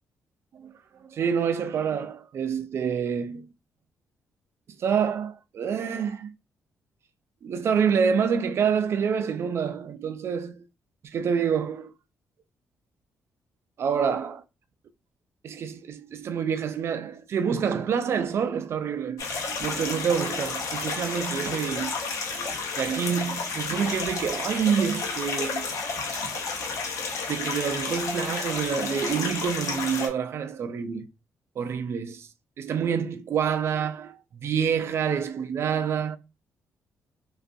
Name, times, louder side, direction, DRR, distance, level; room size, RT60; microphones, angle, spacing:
voice 1, 1.1-3.5 4.8-6.3 7.4-10.5 11.1-11.9 13.8-14.4 15.4-21.9 22.3-26.3 27.3-31.1 31.6-32.3 32.6-36.2, right 7 dB, 50° right, 0.3 m, -27 dB
sound 1, 19.2-30.1, left 4 dB, 75° left, 0.6 m, -31 dB
2.4 x 2.3 x 2.5 m
cardioid pair, 110°, 5 cm